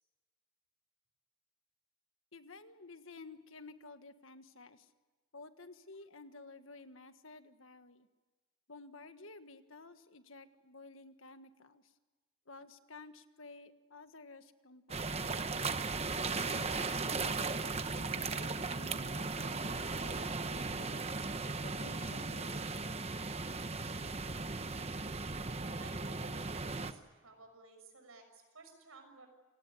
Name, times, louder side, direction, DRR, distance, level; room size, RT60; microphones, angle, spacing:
voice 1, 2.3-4.9 5.3-8.1 8.7-11.9 12.5-15.1 16.1-20.9 21.6-22.8, left 3 dB, 75° left, 9 dB, 1.6 m, -53 dB
sound 1, 14.9-26.9, right 3 dB, 30° right, 1.0 m, -37 dB
voice 2, 25.8-29.3, right 3 dB, 90° right, 6 dB, 6.4 m, -56 dB
29.0 x 18.0 x 9.8 m, 1.2 s
head